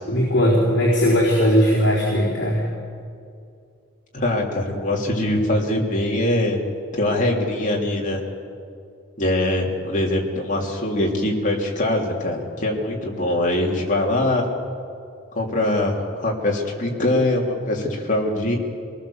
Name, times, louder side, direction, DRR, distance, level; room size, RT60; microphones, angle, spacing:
voice 1, 0.0-2.7, equal, 55° left, -5 dB, 4.0 m, -18 dB
voice 2, 4.1-6.6 7.0-8.2 9.2-14.4 15.3-18.5, left 1 dB, 35° left, -1 dB, 3.2 m, -22 dB
24.5 x 19.5 x 7.2 m, 2.5 s
head